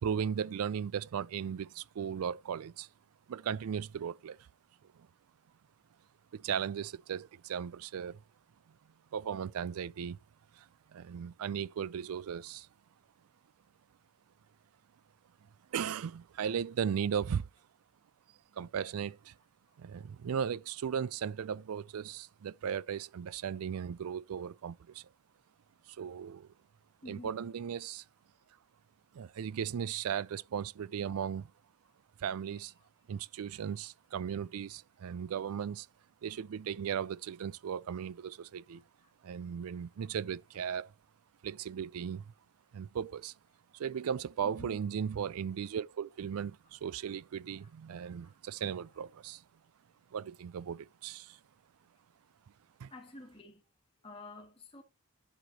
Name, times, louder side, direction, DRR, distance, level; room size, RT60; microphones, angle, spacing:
voice 1, 0.0-2.9 3.3-4.4 5.0-5.1 6.3-8.2 9.1-10.2 10.5-12.7 15.7-17.5 18.5-19.3 19.8-25.0 25.9-26.5 27.1-28.0 29.1-31.5 32.2-32.7 33.1-35.9 36.2-38.8 39.2-40.9 41.4-42.3 42.7-43.3 43.7-49.4 50.1-51.4 52.8-52.9, right 7 dB, 80° right, 0.4 m, -37 dB
voice 2, 27.0-27.3 33.5-33.6 38.7-39.1 39.6-40.1 44.4-44.8 47.6-47.7 48.0-48.4 52.9-53.6 54.0-54.8, left 2 dB, 25° left, 1.7 m, -51 dB
11.5 x 5.0 x 2.8 m
head